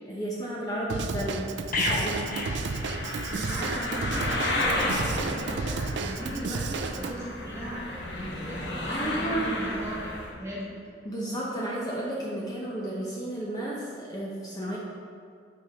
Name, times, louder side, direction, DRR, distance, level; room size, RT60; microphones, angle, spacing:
voice 1, 0.1-1.5 1.9-2.4 8.9-9.5 11.0-14.8, right 1 dB, 20° left, -5 dB, 0.8 m, -32 dB
Drum kit / Drum, 0.9-7.1, right 4 dB, 70° right, 0.4 m, -32 dB
sound 1, 1.7-10.3, left 1 dB, 70° left, 1.1 m, -33 dB
sound 2, 1.7-3.6 3.9-4.1, left 2 dB, 50° left, 0.9 m, -31 dB
voice 2, 3.3-10.7, equal, 15° right, -6 dB, 1.9 m, -37 dB
6.1 x 5.9 x 4.7 m, 2.3 s
head